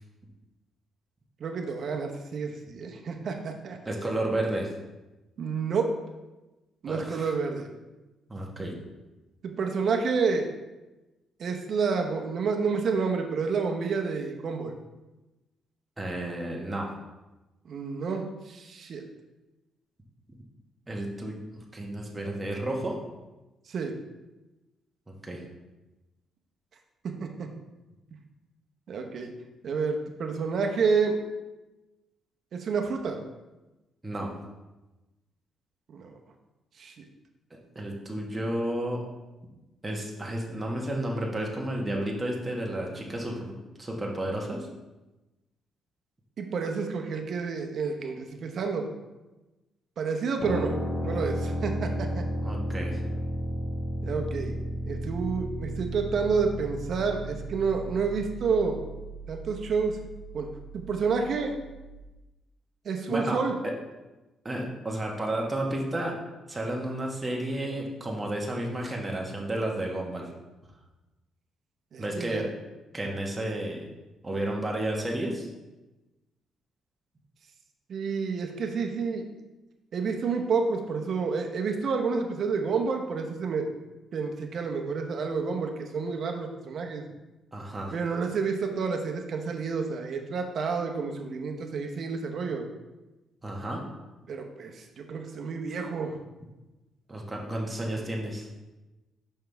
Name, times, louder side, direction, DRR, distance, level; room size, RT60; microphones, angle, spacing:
voice 1, 1.4-3.8 5.4-6.0 6.8-7.7 9.4-10.5 11.4-14.7 17.6-19.0 23.7-23.9 27.0-27.5 28.9-29.3 29.6-31.2 32.5-33.2 35.9-36.1 36.8-37.0 46.4-48.9 50.0-52.2 54.0-54.6 54.9-58.8 59.3-60.0 60.3-60.5 60.7-61.6 62.8-63.5 71.9-72.4 77.9-79.3 79.9-83.7 84.1-87.0 87.9-92.7 94.3-96.2, right 5 dB, 60° right, 3 dB, 0.9 m, -29 dB
voice 2, 3.8-4.7 6.9-7.3 8.3-8.7 16.0-16.9 20.9-23.0 25.2-25.4 34.0-34.3 37.7-39.0 39.8-44.7 52.4-53.0 63.1-63.4 64.4-66.1 66.5-70.3 72.0-72.5 72.9-73.9 74.2-75.5 87.5-88.0 93.4-93.8 97.1-98.5, right 1 dB, 20° right, -1 dB, 1.4 m, -32 dB
sound 1, 50.4-62.0, equal, 40° left, 2.0 m, -34 dB
5.7 x 5.5 x 3.4 m, 1.1 s
cardioid pair, 90°, 0 cm